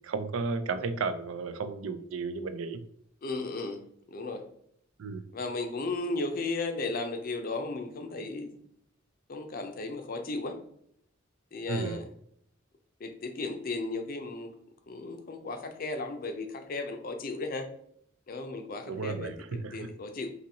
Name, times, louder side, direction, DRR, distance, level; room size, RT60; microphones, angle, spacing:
voice 1, 0.0-2.8 5.0-5.2 11.7-12.0 18.9-19.9, right 4 dB, 90° right, 10 dB, 0.4 m, -33 dB
voice 2, 3.2-3.8 4.1-4.4 5.3-8.5 9.3-10.6 11.5-12.1 13.0-14.5 14.9-17.7 18.3-20.3, left 3 dB, 45° left, 6 dB, 0.5 m, -35 dB
4.1 x 2.7 x 2.7 m, 0.70 s
head